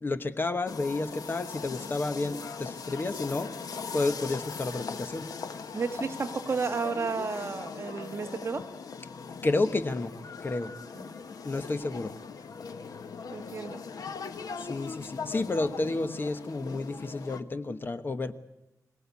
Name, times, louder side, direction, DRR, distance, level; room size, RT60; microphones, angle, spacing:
voice 1, 0.0-3.5 3.9-5.3 9.4-10.1 10.4-10.7 11.4-12.1 14.7-18.3, left 2 dB, 35° left, 9 dB, 1.2 m, -30 dB
sound 1, 0.7-17.4, left 5 dB, 70° left, 1.4 m, -40 dB
voice 2, 5.7-8.7 10.9-11.1 13.3-13.8, right 4 dB, 40° right, 6 dB, 1.5 m, -32 dB
26.0 x 18.0 x 8.4 m, 0.93 s
wide cardioid pair, 175°, 6 cm